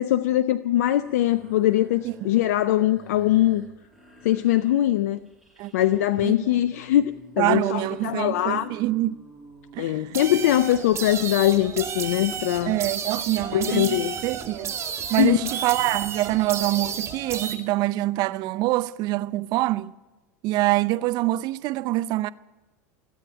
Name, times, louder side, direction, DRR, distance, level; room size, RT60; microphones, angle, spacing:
voice 1, 0.0-3.6 4.2-5.2 5.7-8.7 9.8-12.8 13.5-14.2 15.2-15.5, left 13 dB, 75° left, 0.5 m, -22 dB
sound 1, 1.0-16.1, right 1 dB, ahead, 7.2 m, -50 dB
voice 2, 7.4-9.2 9.7-10.2 12.7-14.8 15.1-19.9 20.4-22.3, right 17 dB, 55° right, 0.6 m, -25 dB
sound 2, 10.1-17.6, right 7 dB, 35° right, 2.1 m, -32 dB
16.5 x 8.4 x 9.9 m
hypercardioid pair, 85°, 8 cm